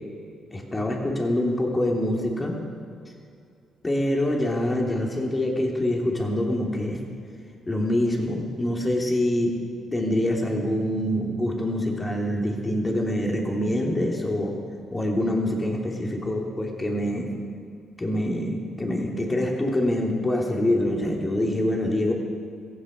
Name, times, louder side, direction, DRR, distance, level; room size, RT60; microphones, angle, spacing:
voice 1, 0.5-2.6 3.8-7.0 7.7-9.6 9.9-14.6 14.9-17.3 18.0-22.1, left 1 dB, 20° left, 0 dB, 3.0 m, -25 dB
16.5 x 15.0 x 5.4 m, 2.4 s
cardioid pair, 90°, 0 cm